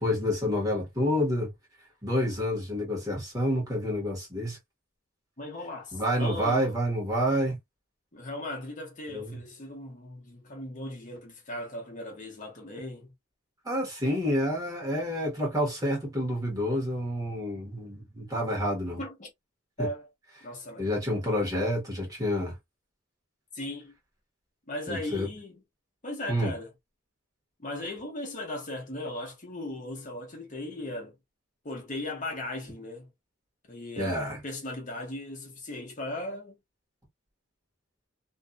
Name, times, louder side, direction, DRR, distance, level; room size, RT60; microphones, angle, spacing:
voice 1, 0.0-1.5 2.0-4.6 5.9-7.6 9.1-9.4 13.6-19.0 19.8-19.9 20.8-22.5 24.9-25.3 26.3-26.5 34.0-34.4, equal, 15° right, 1.2 m, -28 dB
voice 2, 5.4-6.8 8.1-13.1 19.0-19.3 19.8-20.1 20.4-20.9 23.5-23.9 24.7-25.6 26.0-26.7 27.6-31.1 31.6-33.1 33.6-36.6, left 1 dB, 35° left, 0.9 m, -37 dB
2.6 x 2.4 x 2.2 m
head